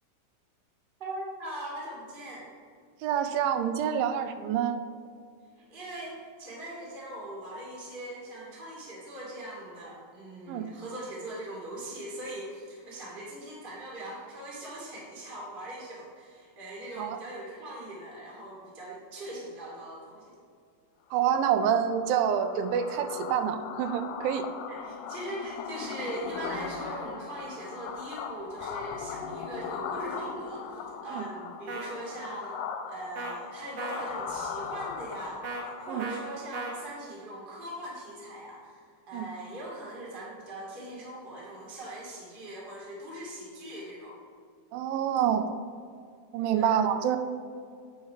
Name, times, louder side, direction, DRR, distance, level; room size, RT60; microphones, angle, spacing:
voice 1, 1.0-2.5 5.6-20.3 24.7-32.6 32.9-44.1 46.5-46.7, right 1 dB, 20° right, -5 dB, 1.4 m, -41 dB
voice 2, 3.0-4.8 10.5-10.7 17.0-17.2 21.1-24.5 31.1-31.2 35.9-36.1 39.1-39.2 44.7-45.5 46.3-47.2, right 9 dB, 85° right, 9 dB, 2.3 m, -27 dB
sound 1, 21.2-36.6, left 6 dB, 80° left, 2.2 m, -39 dB
sound 2, 31.7-31.9 33.2-33.3 33.8-34.1 35.4-35.6 36.0-36.2 36.5-36.7, right 3 dB, 65° right, 1.6 m, -36 dB
8.8 x 4.6 x 4.9 m, 2.2 s
omnidirectional pair, 4.1 m